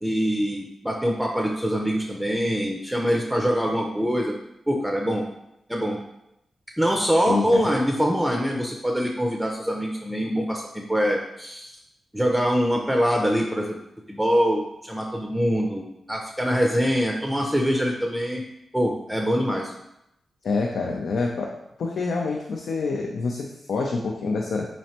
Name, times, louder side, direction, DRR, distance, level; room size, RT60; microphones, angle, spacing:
voice 1, 0.0-4.4 4.7-5.3 5.7-6.0 6.8-11.8 12.1-13.7 14.1-18.4 18.7-19.7, equal, 10° right, 0 dB, 0.5 m, -24 dB
voice 2, 7.3-7.6 20.4-21.5 21.8-24.7, left 4 dB, 75° left, -1 dB, 0.4 m, -26 dB
4.2 x 3.1 x 2.8 m, 0.85 s
cardioid pair, 60°, 0 cm